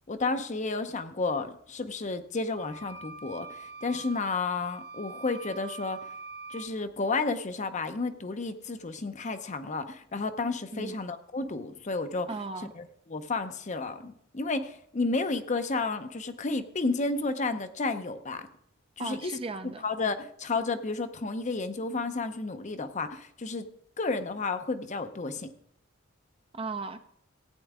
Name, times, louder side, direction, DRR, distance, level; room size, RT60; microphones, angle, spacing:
voice 1, 0.1-6.1 6.5-12.3 12.7-18.5 19.0-19.3 19.8-23.7 24.0-25.5, left 3 dB, 35° left, 9 dB, 0.7 m, -32 dB
sound 1, 2.5-6.7, right 4 dB, 85° right, 2.9 m, -44 dB
voice 2, 12.3-12.7 19.0-19.8 26.5-27.0, right 3 dB, 25° right, 9 dB, 0.6 m, -36 dB
15.5 x 9.2 x 3.6 m, 0.68 s
head